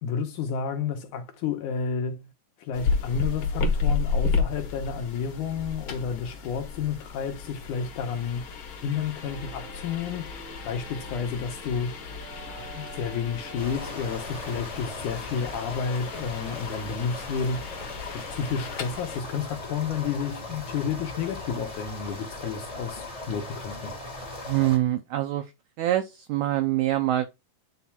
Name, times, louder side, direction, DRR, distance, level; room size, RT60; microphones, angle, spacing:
voice 1, 0.0-2.3 2.6-8.5 8.8-12.0 12.5-17.8 18.1-23.9, left 6 dB, 75° left, 2.0 m, -31 dB
sound 1, 2.7-19.2, left 4 dB, 60° left, 1.5 m, -33 dB
sound 2, 9.2-14.7, right 5 dB, 65° right, 2.6 m, -47 dB
sound 3, 13.6-24.8, left 2 dB, 35° left, 0.6 m, -38 dB
voice 2, 24.4-25.5 25.8-27.3, right 14 dB, 85° right, 1.6 m, -25 dB
9.3 x 5.7 x 2.3 m
omnidirectional pair, 4.1 m